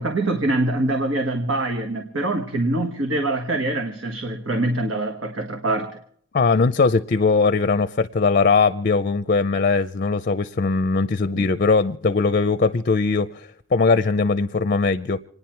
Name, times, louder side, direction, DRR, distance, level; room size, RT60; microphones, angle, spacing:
voice 1, 0.0-6.0 11.3-11.4, right 2 dB, 80° right, 1.4 m, -24 dB
voice 2, 6.3-15.2, left 4 dB, 45° left, 0.5 m, -20 dB
28.0 x 9.9 x 4.5 m
head